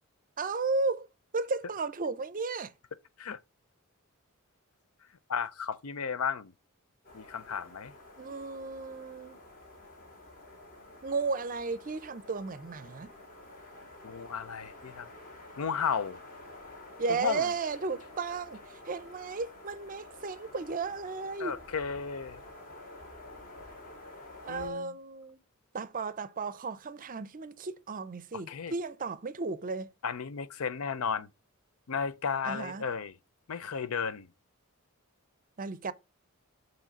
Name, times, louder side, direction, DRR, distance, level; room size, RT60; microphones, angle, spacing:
voice 1, 0.4-1.1 1.3-2.7 8.2-9.4 11.0-13.1 17.0-18.6 18.9-21.6 24.4-25.4 25.7-29.9 32.4-32.8 35.6-35.9, right 4 dB, 40° right, 0.5 m, -34 dB
voice 2, 5.3-6.5 7.1-7.9 14.0-15.1 15.6-16.2 17.1-17.5 21.4-22.4 24.5-24.9 28.5-28.7 30.0-31.3 31.9-33.2 33.5-34.3, left 6 dB, 75° left, 0.6 m, -34 dB
sound 1, 7.0-24.7, left 2 dB, 45° left, 2.4 m, -50 dB
7.3 x 3.1 x 5.1 m
head